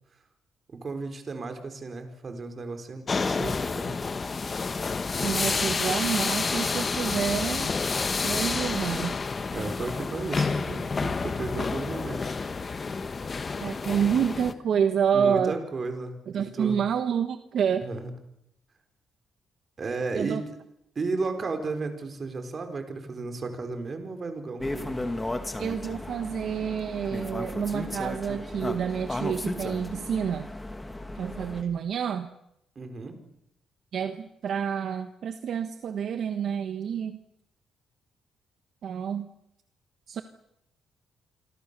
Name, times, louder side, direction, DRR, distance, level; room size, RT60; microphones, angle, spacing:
voice 1, 0.7-3.9 9.5-10.9 11.2-12.4 13.2-13.3 15.1-16.8 17.8-18.1 19.8-20.4 20.9-25.0 32.8-33.2, right 3 dB, 35° right, 7 dB, 4.4 m, -34 dB
sound 1, 3.1-14.5, left 4 dB, 30° left, 1.4 m, -29 dB
voice 2, 5.2-7.7 8.2-9.1 11.0-11.2 13.6-15.6 16.3-17.9 20.1-20.4 25.6-30.5 31.1-32.3 33.9-37.2 38.8-39.3 40.1-40.2, right 7 dB, 60° right, 8 dB, 1.4 m, -28 dB
sound 2, 24.6-31.6, left 1 dB, 10° left, 2.5 m, -34 dB
27.5 x 24.5 x 6.9 m, 0.82 s
cardioid pair, 130°, 0 cm